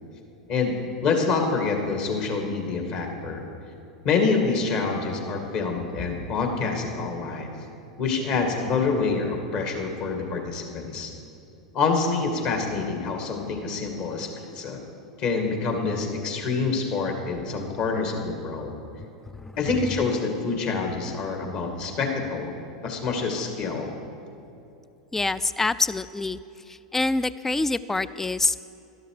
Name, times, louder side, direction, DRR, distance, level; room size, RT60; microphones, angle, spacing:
voice 1, 0.5-3.4 4.0-7.5 8.0-11.1 11.7-14.8 15.2-18.7 19.6-22.6 22.8-23.9, left 4 dB, 50° left, 3 dB, 2.3 m, -26 dB
voice 2, 25.1-26.4 26.7-28.7, left 2 dB, 10° left, 16 dB, 0.4 m, -26 dB
13.0 x 12.0 x 4.9 m, 2.7 s
hypercardioid pair, 95°, 3 cm